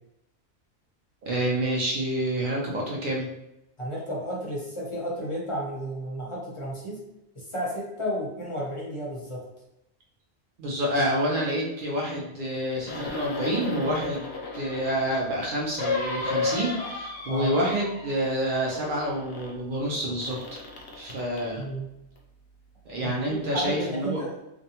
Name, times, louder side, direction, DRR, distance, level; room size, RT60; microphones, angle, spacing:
voice 1, 1.2-3.3 10.6-20.6 21.0-21.6 22.9-24.2, right 1 dB, 60° right, -3 dB, 0.7 m, -28 dB
voice 2, 3.8-7.0 7.3-9.4 17.3-17.5 21.6-21.9 23.0-24.4, equal, 35° left, -4 dB, 0.6 m, -32 dB
sound 1, 12.8-15.1 15.8-18.3 18.5-19.6 20.2-21.5 22.2-22.3, left 3 dB, 85° left, 0.8 m, -34 dB
2.5 x 2.1 x 2.7 m, 0.88 s
omnidirectional pair, 1.1 m